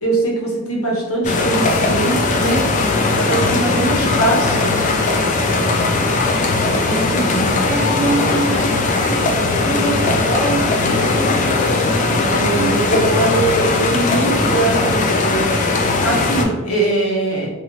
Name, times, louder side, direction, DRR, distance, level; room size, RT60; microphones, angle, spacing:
voice 1, 0.0-2.6 3.0-4.7 6.6-7.5 12.2-15.5 16.0-17.5, right 2 dB, 80° left, -3 dB, 0.9 m, -21 dB
sound 1, 1.2-16.4, left 3 dB, 35° left, 0.3 m, -18 dB
voice 2, 5.4-5.9 7.6-11.3 11.9-13.0, right 2 dB, 35° right, 1 dB, 0.4 m, -25 dB
2.7 x 2.4 x 2.9 m, 1.2 s
head